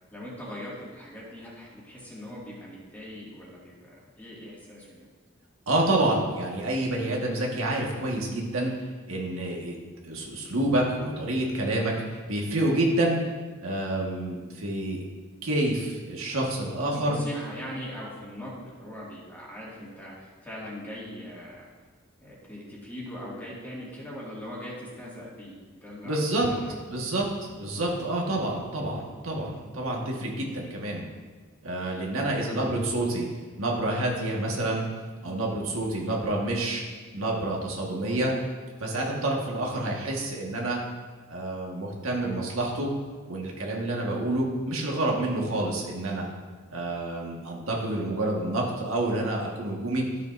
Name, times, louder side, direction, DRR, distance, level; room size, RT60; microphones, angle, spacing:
voice 1, 0.1-5.1 16.9-21.7 22.2-25.5 25.8-26.8 32.1-32.7 39.7-40.0, equal, 10° left, -6 dB, 2.1 m, -41 dB
voice 2, 5.7-8.7 9.1-9.8 10.0-13.2 13.6-15.0 15.4-17.2 26.0-26.5 26.9-31.0 31.6-33.3 33.6-34.8 35.2-36.8 37.1-38.3 38.8-40.8 41.3-42.9 43.3-46.3 46.7-50.0, right 1 dB, 85° right, -2 dB, 1.6 m, -28 dB
12.5 x 6.7 x 2.6 m, 1.4 s
head